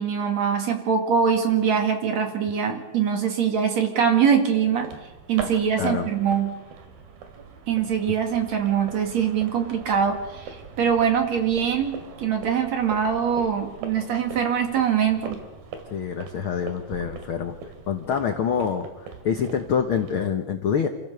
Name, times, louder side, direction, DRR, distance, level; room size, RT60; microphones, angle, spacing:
voice 1, 0.0-4.9 5.3-6.5 7.7-15.4, right 7 dB, 55° right, 4 dB, 3.1 m, -23 dB
sound 1, 4.7-20.2, right 5 dB, 85° right, 4.0 m, -41 dB
voice 2, 5.8-6.1 15.9-17.5 17.9-20.9, left 7 dB, 80° left, 6 dB, 1.1 m, -26 dB
28.5 x 15.5 x 6.8 m, 1.1 s
omnidirectional pair, 4.1 m